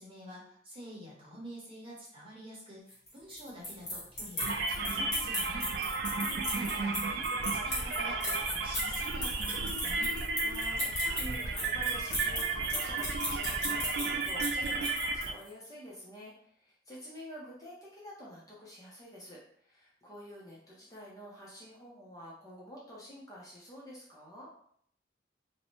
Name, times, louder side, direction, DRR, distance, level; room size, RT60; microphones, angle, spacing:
voice 1, 0.0-5.7 6.4-10.1, equal, 30° right, -5 dB, 0.9 m, -47 dB
sound 1, 2.9-15.5, left 1 dB, 40° left, 1.2 m, -36 dB
sound 2, 4.4-15.3, right 3 dB, 65° right, 0.4 m, -33 dB
voice 2, 5.8-6.9 10.1-24.5, equal, 20° left, -5 dB, 0.6 m, -49 dB
2.6 x 2.0 x 3.0 m, 0.62 s
head